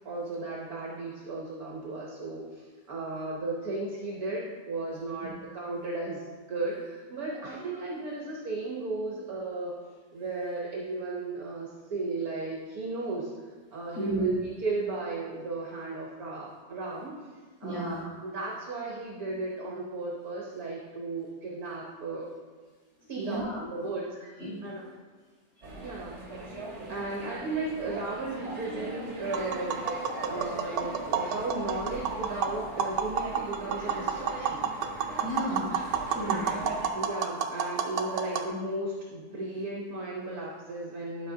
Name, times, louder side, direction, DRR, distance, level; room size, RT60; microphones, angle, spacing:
voice 1, 0.0-9.8 10.1-13.3 13.7-17.1 17.6-22.3 23.1-24.8 25.8-26.2 26.9-34.6 36.9-41.3, right 2 dB, 60° right, -3 dB, 1.5 m, -35 dB
voice 2, 14.0-14.3 17.6-18.0 23.2-23.6 24.4-24.6 35.2-36.5, right 1 dB, 45° left, -8 dB, 1.7 m, -32 dB
sound 1, 25.6-36.9, right 2 dB, 40° right, 1.6 m, -40 dB
Tap, 29.2-38.5, right 6 dB, 80° right, 1.3 m, -31 dB
11.5 x 5.9 x 2.7 m, 1.4 s
omnidirectional pair, 1.9 m